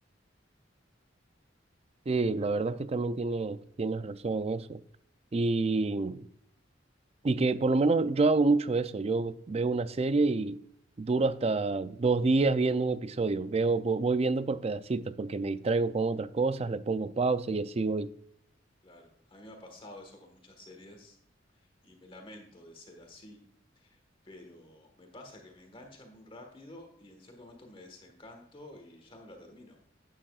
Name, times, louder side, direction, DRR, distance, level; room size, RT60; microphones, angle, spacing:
voice 1, 2.1-4.8 5.3-6.3 7.2-10.6 11.0-18.1, right 3 dB, 35° right, 0.4 m, -28 dB
voice 2, 18.8-21.2 21.8-23.4 23.8-24.0 24.2-29.8, left 1 dB, 30° left, 1.5 m, -50 dB
12.0 x 8.8 x 2.4 m
head